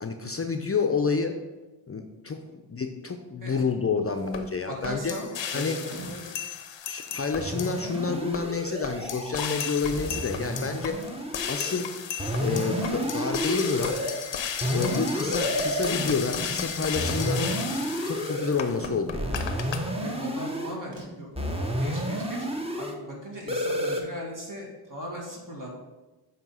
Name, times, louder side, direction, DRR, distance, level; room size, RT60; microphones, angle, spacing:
voice 1, 0.0-1.4 1.9-5.1 5.5-5.8 6.9-11.0 11.5-11.9 12.4-14.0 14.7-17.6 18.0-19.3, left 4 dB, 30° left, 5 dB, 0.6 m, -29 dB
sound 1, 4.3-4.4 4.8-7.9 8.3-8.4 8.8-19.8, left 8 dB, 75° left, 0.7 m, -34 dB
voice 2, 4.7-6.4 13.7-13.9 14.9-15.7 20.0-21.3 21.6-22.5 22.8-25.7, equal, 45° right, -1 dB, 2.0 m, -39 dB
sound 2, 5.9-6.2 7.1-7.2 7.9-8.5 9.1-9.2 12.6-13.0 15.1-15.5 15.8-15.9 16.1-17.2 18.8-19.0 20.9-21.3, right 2 dB, 65° right, 1.9 m, -41 dB
sound 3, 7.4-9.3 9.8-11.8 12.2-14.2 14.6-16.2 16.9-18.5 19.1-20.8 21.3-22.9 23.5-24.0, equal, 15° right, 1.0 m, -30 dB
7.5 x 2.9 x 5.5 m, 1.1 s
cardioid pair, 60°, 44 cm